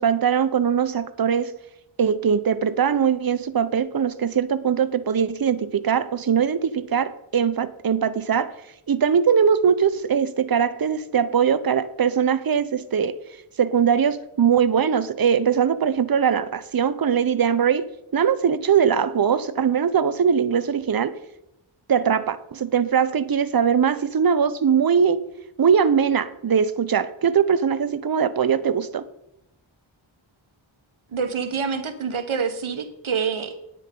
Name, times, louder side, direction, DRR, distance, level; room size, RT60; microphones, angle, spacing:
voice 1, 0.0-1.6 2.0-8.5 8.9-13.2 13.6-21.1 21.9-25.2 25.6-29.1, right 7 dB, 45° right, 0.8 m, -21 dB
voice 2, 31.1-33.6, right 6 dB, 80° right, 1.4 m, -27 dB
9.3 x 9.1 x 5.4 m
cardioid pair, 45°, 48 cm